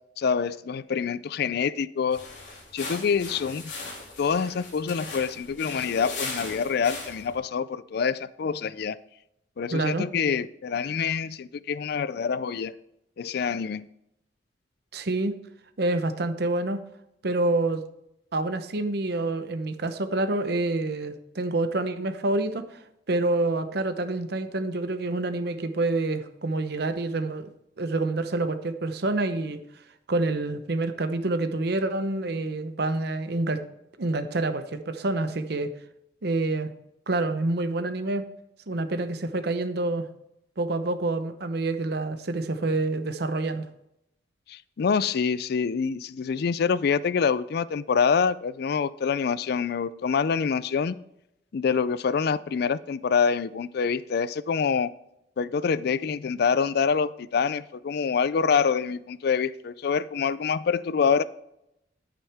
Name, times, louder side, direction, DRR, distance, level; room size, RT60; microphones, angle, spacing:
voice 1, 0.2-2.3 2.7-3.7 4.2-9.0 9.6-12.8 13.2-13.9 44.5-51.0 51.5-54.9 55.4-61.2, left 6 dB, 60° left, 0.4 m, -26 dB
sound 1, 2.1-7.4, left 3 dB, 85° left, 3.3 m, -38 dB
voice 2, 9.7-10.1 14.9-15.3 15.8-16.8 17.2-17.8 18.3-22.8 23.1-27.5 27.8-29.6 30.1-33.6 34.0-35.7 36.2-36.7 37.1-38.2 38.7-40.1 40.6-43.7, right 2 dB, 65° right, 0.8 m, -27 dB
10.0 x 8.9 x 3.5 m
head